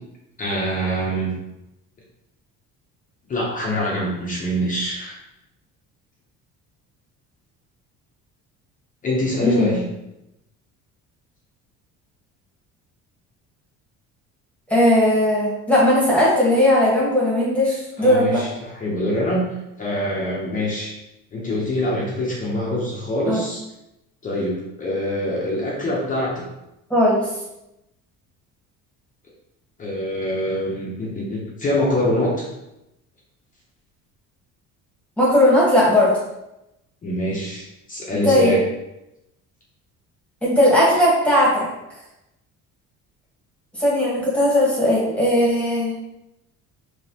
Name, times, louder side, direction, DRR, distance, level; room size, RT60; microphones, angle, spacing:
voice 1, 0.4-1.3 3.3-5.2 9.0-9.8 17.7-19.4 19.8-21.0 21.3-23.6 24.2-26.4 29.8-32.5 37.0-38.6, left 1 dB, 25° left, -4 dB, 0.8 m, -24 dB
voice 2, 9.4-9.8 14.7-18.4 23.3-23.4 26.9-27.3 35.2-36.1 38.2-38.5 40.4-41.7 43.8-45.9, left 1 dB, 5° left, -7 dB, 1.4 m, -17 dB
5.2 x 3.2 x 2.9 m, 0.89 s
cardioid pair, 160°, 31 cm